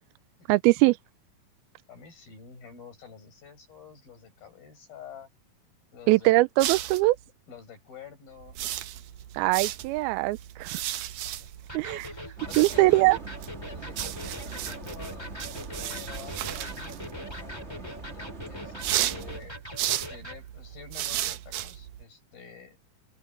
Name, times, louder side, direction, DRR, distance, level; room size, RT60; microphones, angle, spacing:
voice 1, 0.5-0.9 6.1-7.2 9.3-10.8 11.7-12.1 12.6-13.2, right 21 dB, 85° right, 2.4 m, -22 dB
voice 2, 1.9-5.3 5.9-6.3 7.5-8.6 11.2-11.5 12.0-13.2 13.7-15.3 15.8-19.6 20.0-22.8, left 7 dB, 70° left, 9.7 m, -48 dB
sound 1, 6.6-7.2 8.4-17.3 18.8-22.0, right 13 dB, 70° right, 2.2 m, -35 dB
Electric guitar, 11.7-20.4, left 1 dB, 5° left, 3.5 m, -42 dB
sound 2, 12.4-19.4, right 3 dB, 25° right, 1.6 m, -42 dB
open air
omnidirectional pair, 4.3 m